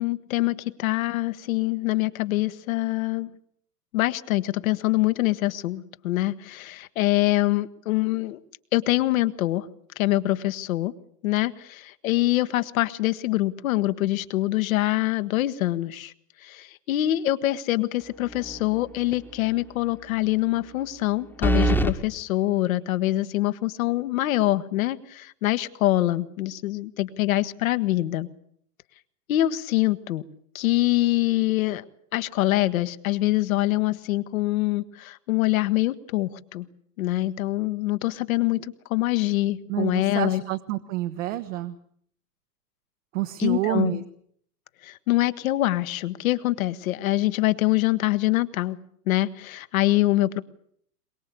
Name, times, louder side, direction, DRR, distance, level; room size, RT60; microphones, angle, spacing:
voice 1, 0.0-3.3 3.9-8.4 8.7-9.7 10.0-10.9 11.2-16.1 16.4-28.3 29.3-30.2 30.5-31.8 32.1-36.7 37.0-40.4 43.4-43.9 44.8-48.8 49.1-50.4, left 16 dB, 60° left, 12 dB, 1.5 m, -24 dB
sound 1, 18.3-18.8 19.1-19.2 21.4-22.0, right 1 dB, 5° left, 1.4 m, -23 dB
voice 2, 39.7-41.8 43.1-44.0, right 16 dB, 55° right, 9 dB, 1.4 m, -28 dB
23.0 x 21.5 x 8.4 m, 0.66 s
hypercardioid pair, 110°, 46 cm